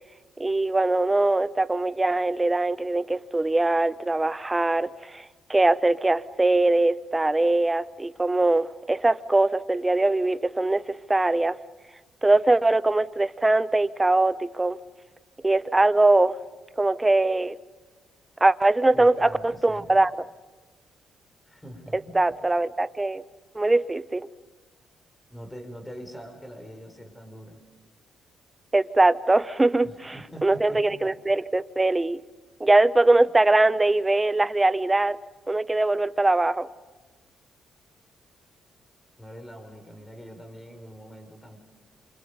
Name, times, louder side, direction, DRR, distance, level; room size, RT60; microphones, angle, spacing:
voice 1, 0.4-5.2 5.5-11.6 12.2-14.8 15.4-16.4 16.8-17.6 18.4-20.1 21.9-23.2 23.5-24.3 28.7-30.1 30.4-32.2 32.6-35.2 35.5-36.7, right 2 dB, 15° right, 15 dB, 0.9 m, -22 dB
voice 2, 18.9-20.0 21.5-22.2 25.3-27.6 29.8-31.1 39.2-41.6, equal, 10° left, 5 dB, 5.6 m, -43 dB
28.0 x 26.0 x 5.4 m, 1.4 s
cardioid pair, 90°, 0 cm